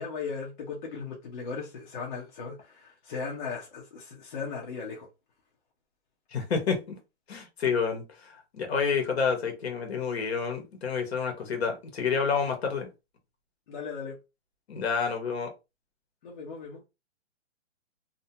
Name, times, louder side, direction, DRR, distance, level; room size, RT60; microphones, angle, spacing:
voice 1, 0.0-5.1 13.7-14.2 16.2-16.8, left 5 dB, 45° left, 0.8 m, -37 dB
voice 2, 6.3-7.0 7.3-12.9 14.7-15.5, left 5 dB, 60° left, 1.1 m, -29 dB
2.6 x 2.2 x 2.8 m
hypercardioid pair, 165°, 35 cm